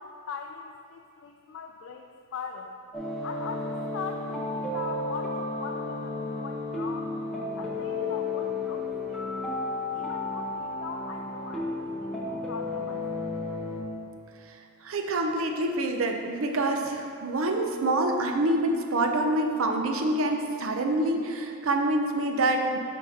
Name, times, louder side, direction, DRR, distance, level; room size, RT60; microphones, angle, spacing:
voice 1, 0.0-2.8 3.2-7.2 7.6-9.4 9.9-13.3, left 5 dB, 65° left, 3 dB, 0.3 m, -41 dB
sound 1, 2.9-13.8, left 2 dB, ahead, 0.9 m, -32 dB
voice 2, 14.8-22.8, right 2 dB, 75° right, 3 dB, 0.6 m, -26 dB
6.7 x 3.6 x 5.0 m, 2.3 s
head